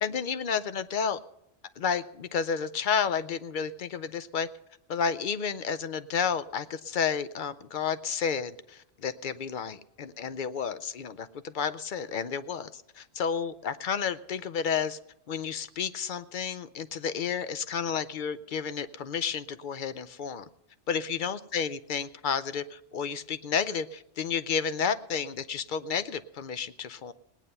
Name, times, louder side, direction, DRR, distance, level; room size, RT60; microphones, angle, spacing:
voice 1, 0.0-1.2 1.8-4.5 4.9-15.0 15.3-20.4 20.9-27.1, left 6 dB, 55° left, 13 dB, 0.6 m, -31 dB
19.0 x 9.1 x 5.4 m, 0.82 s
omnidirectional pair, 1.2 m